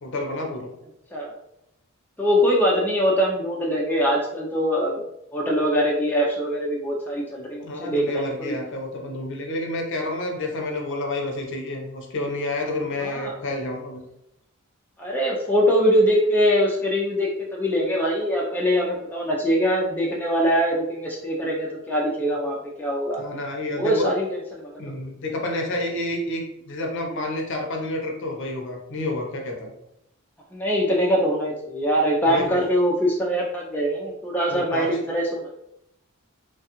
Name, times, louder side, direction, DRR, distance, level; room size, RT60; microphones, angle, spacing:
voice 1, 0.0-0.7 7.6-14.0 23.2-24.1 24.8-29.7 32.2-32.6 34.5-34.9, left 2 dB, 55° left, 1 dB, 0.6 m, -29 dB
voice 2, 2.2-5.0 5.3-8.5 13.0-13.3 15.0-23.2 23.7-24.2 24.5-25.0 30.5-35.5, equal, 10° left, -3 dB, 0.4 m, -23 dB
3.2 x 2.3 x 2.9 m, 0.82 s
head